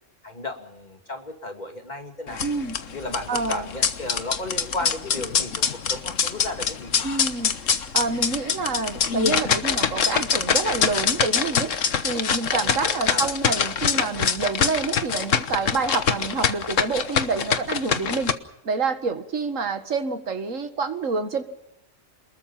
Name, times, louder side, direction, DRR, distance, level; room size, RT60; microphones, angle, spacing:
voice 1, 0.2-2.4 2.9-6.9 12.5-13.3, left 2 dB, 35° left, 5 dB, 2.7 m, -34 dB
sound 1, 2.3-18.3, left 6 dB, 80° left, 1.5 m, -24 dB
voice 2, 2.4-2.8 3.3-3.7 7.0-7.5 7.9-11.7 12.0-18.3 18.6-21.4, right 4 dB, 90° right, 9 dB, 2.1 m, -27 dB
28.0 x 21.0 x 5.7 m, 0.82 s
omnidirectional pair, 1.3 m